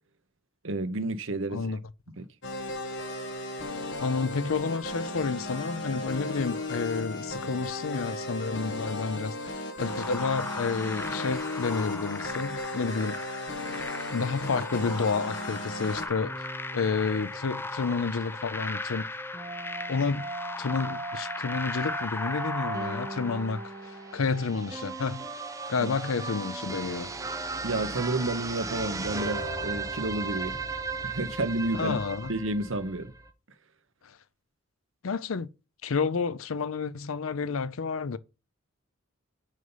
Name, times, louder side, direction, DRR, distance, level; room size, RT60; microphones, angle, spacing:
voice 1, 0.6-1.7 2.2-2.3 25.8-25.9 27.6-30.6 31.0-32.0 32.3-33.1, right 2 dB, 65° right, 1.0 m, -30 dB
voice 2, 1.5-1.8 4.0-13.2 14.1-16.5 16.7-19.1 19.9-20.3 20.6-25.3 25.7-27.1 31.7-32.3 34.0-34.2 35.0-35.5 35.8-38.2, left 4 dB, 80° left, 0.6 m, -30 dB
sound 1, 2.4-16.1, left 1 dB, 60° left, 1.6 m, -35 dB
sound 2, 9.8-24.2, left 2 dB, 10° left, 0.4 m, -37 dB
sound 3, 16.2-33.3, right 3 dB, 15° right, 1.0 m, -37 dB
6.4 x 5.4 x 5.6 m
head